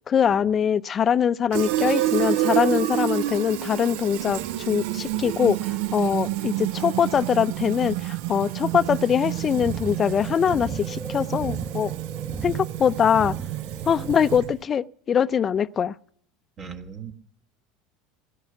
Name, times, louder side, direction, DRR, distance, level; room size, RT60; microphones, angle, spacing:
voice 1, 0.1-11.9 12.4-13.3 13.9-15.9, left 8 dB, 35° left, 0.5 m, -23 dB
Fill (with liquid), 1.5-14.6, right 15 dB, 70° right, 0.5 m, -29 dB
sound 1, 3.8-14.2, right 3 dB, 15° right, 0.9 m, -39 dB
voice 2, 16.6-17.1, right 6 dB, 45° right, 1.6 m, -38 dB
16.5 x 11.5 x 5.9 m
hypercardioid pair, 90°, 0 cm